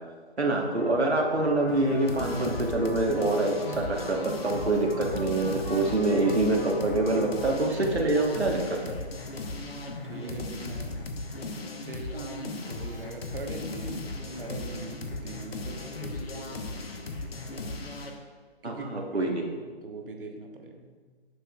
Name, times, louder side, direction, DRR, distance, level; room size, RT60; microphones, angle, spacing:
voice 1, 0.4-8.8 18.6-19.4, right 2 dB, 90° right, 0 dB, 1.4 m, -25 dB
sound 1, 0.6-7.5, left 1 dB, 25° left, 2.3 m, -43 dB
sound 2, 1.7-18.2, left 2 dB, 65° left, 1.0 m, -37 dB
voice 2, 9.7-11.1 11.8-16.8 18.6-20.9, right 3 dB, 55° right, 2 dB, 1.2 m, -42 dB
11.0 x 6.1 x 2.4 m, 1.5 s
figure-of-eight pair, 150°, 32 cm